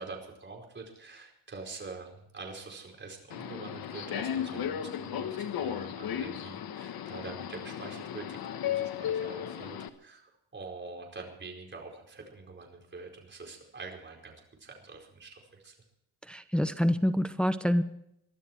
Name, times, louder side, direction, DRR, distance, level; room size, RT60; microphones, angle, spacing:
voice 1, 0.0-15.8, right 3 dB, 30° right, 1 dB, 4.7 m, -45 dB
Subway metro underground, 3.3-9.9, left 9 dB, 70° left, 1.3 m, -35 dB
voice 2, 16.3-17.8, equal, 5° left, 10 dB, 0.8 m, -26 dB
22.5 x 13.0 x 4.6 m, 0.76 s
cardioid pair, 120°, 37 cm